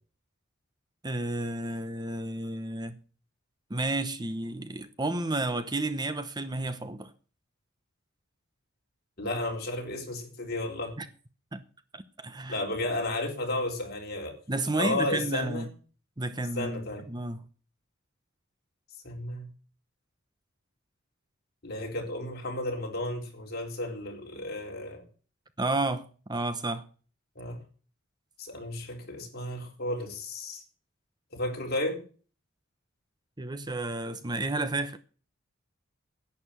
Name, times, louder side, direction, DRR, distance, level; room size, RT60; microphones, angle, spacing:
voice 1, 1.0-3.0 3.7-7.1 11.0-11.1 11.5-11.6 11.9-12.6 14.5-15.7 16.2-17.4 25.6-26.9 33.4-35.0, right 2 dB, 20° right, 0.9 m, -31 dB
voice 2, 9.2-11.0 12.5-14.3 14.7-15.7 16.6-17.0 19.0-19.5 21.6-25.0 27.4-27.6 28.4-30.6 31.3-32.0, left 1 dB, 50° left, 4.1 m, -33 dB
11.0 x 9.6 x 7.0 m
head